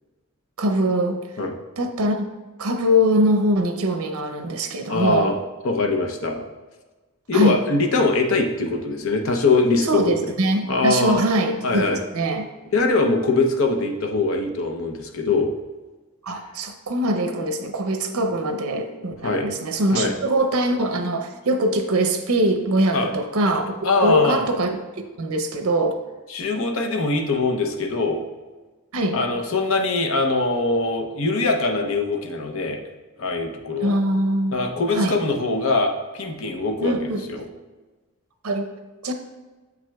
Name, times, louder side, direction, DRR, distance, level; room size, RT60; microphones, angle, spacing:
voice 1, 0.6-1.2 1.8-2.2 2.6-5.3 7.3-7.6 9.9-12.4 16.2-23.7 24.0-24.8 25.2-26.0 28.9-29.2 33.8-34.6 34.9-35.2 36.8-37.2 38.4-38.7 39.0-39.1, right 1 dB, 80° right, 6 dB, 0.7 m, -22 dB
voice 2, 4.9-5.4 5.6-6.4 7.3-10.3 10.7-11.3 11.6-12.0 12.7-15.5 19.2-19.5 19.9-20.1 22.9-23.1 23.8-24.4 26.3-28.2 29.1-32.8 33.2-34.0 34.5-37.5, left 3 dB, 65° left, 3 dB, 0.7 m, -22 dB
7.2 x 6.0 x 2.3 m, 1.3 s
head